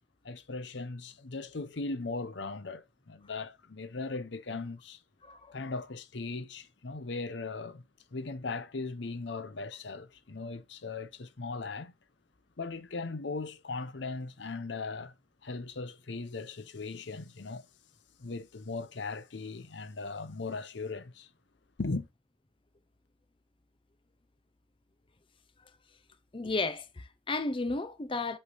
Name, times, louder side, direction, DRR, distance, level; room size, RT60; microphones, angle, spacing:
voice 1, 0.2-5.0 5.5-7.9 8.1-11.9 12.6-15.1 15.4-17.7 18.2-21.3 21.8-22.1, left 3 dB, 65° left, 0.8 m, -38 dB
voice 2, 5.2-5.6 26.3-28.4, left 3 dB, 30° left, 0.6 m, -33 dB
8.3 x 3.3 x 5.3 m
head